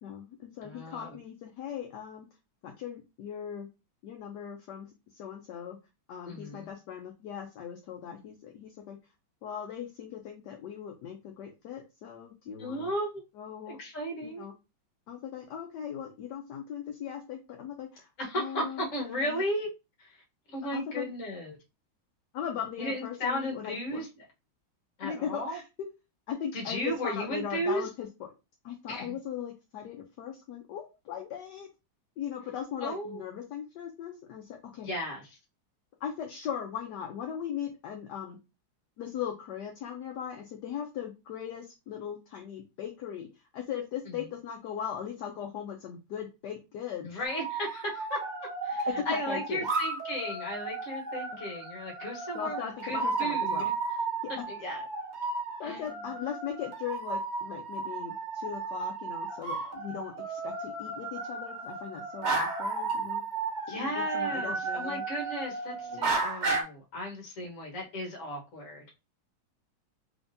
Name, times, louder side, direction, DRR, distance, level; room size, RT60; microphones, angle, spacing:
voice 1, 0.0-2.3 2.6-3.7 4.0-5.8 6.1-9.0 9.4-12.9 13.4-13.8 14.2-14.5 15.1-18.1 18.3-18.9 19.1-19.4 20.7-21.0 22.3-24.0 25.0-25.6 26.3-28.3 28.6-31.7 32.2-34.9 36.0-38.4 39.0-43.3 43.5-47.1 49.0-49.7 52.3-53.7 55.6-63.2 63.7-65.0 65.9-66.2, left 8 dB, 70° left, 1.0 m, -39 dB
voice 2, 0.6-1.2 6.2-6.7 12.6-13.2 13.7-14.4 18.2-19.7 20.0-20.2 20.5-21.6 22.8-24.2 25.0-25.6 26.5-27.9 28.9-29.2 32.8-33.2 34.8-35.4 44.1-44.2 47.0-48.2 48.6-53.7 54.5-54.8 55.6-56.0 63.7-68.8, equal, 45° left, 1.3 m, -35 dB
sound 1, 47.2-66.6, right 3 dB, 60° right, 0.4 m, -34 dB
3.6 x 3.4 x 2.6 m
omnidirectional pair, 2.3 m